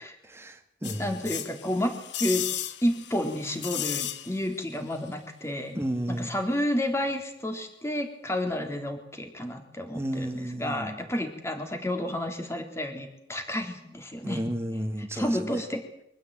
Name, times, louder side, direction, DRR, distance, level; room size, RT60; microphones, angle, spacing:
voice 1, 0.2-1.2 5.7-6.3 9.9-11.0 14.2-15.6, right 1 dB, 15° right, 6 dB, 2.3 m, -33 dB
sound 1, 0.8-4.6 4.9-5.0, left 11 dB, 75° left, 1.5 m, -35 dB
voice 2, 1.0-2.5 2.8-5.8 6.1-14.4 15.1-15.8, left 1 dB, 15° left, 4 dB, 3.8 m, -30 dB
25.0 x 16.0 x 9.1 m, 0.77 s
head